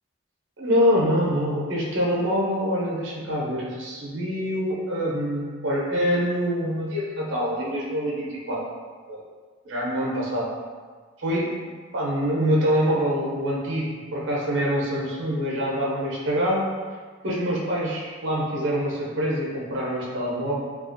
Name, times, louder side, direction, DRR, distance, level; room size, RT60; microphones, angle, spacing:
voice 1, 0.6-8.6 9.1-9.2 9.7-10.5 11.2-11.5 11.9-16.6 17.2-20.6, equal, 65° right, -5 dB, 0.5 m, -25 dB
2.4 x 2.3 x 2.5 m, 1.5 s
head